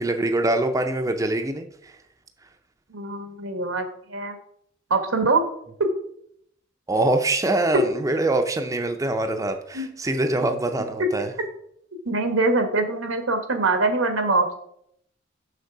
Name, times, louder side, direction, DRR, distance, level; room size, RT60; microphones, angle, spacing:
voice 1, 0.0-1.9 6.9-11.3, right 2 dB, 15° right, 5 dB, 0.5 m, -24 dB
voice 2, 2.9-4.4 4.9-5.4 7.7-7.8 9.7-9.9 12.0-14.6, right 3 dB, 85° right, 6 dB, 1.4 m, -23 dB
6.6 x 6.1 x 4.7 m, 0.69 s
head